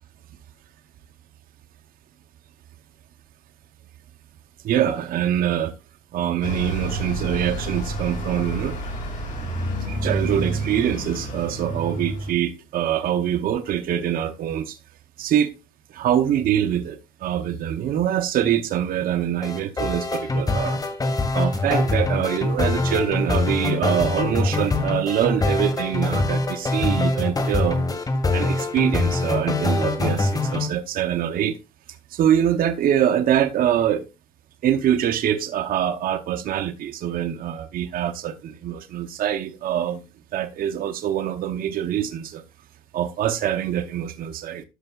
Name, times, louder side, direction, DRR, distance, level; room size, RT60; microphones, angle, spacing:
voice 1, 4.6-5.7 6.1-8.8 9.9-14.8 15.2-15.5 15.9-20.8 21.3-27.8 28.3-31.6 32.1-34.1 34.6-40.0 40.3-42.4 42.9-44.6, right 10 dB, 60° right, 0.8 m, -24 dB
Bus, 6.4-12.3, right 1 dB, 50° left, 3.9 m, -29 dB
sound 1, 19.4-30.7, left 2 dB, 20° left, 1.5 m, -23 dB
13.0 x 5.4 x 2.4 m
cardioid pair, 110°, 17 cm